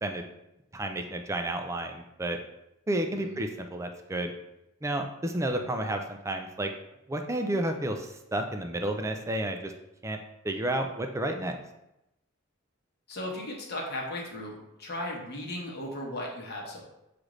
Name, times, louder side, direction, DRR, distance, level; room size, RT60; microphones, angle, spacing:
voice 1, 0.7-2.4 2.9-4.3 4.8-6.7 7.1-9.7 10.0-10.2 10.4-11.6, right 1 dB, 15° right, 5 dB, 0.3 m, -31 dB
voice 2, 3.1-3.4 13.1-16.8, left 1 dB, 50° left, -1 dB, 1.0 m, -36 dB
6.4 x 2.5 x 3.1 m, 0.88 s
head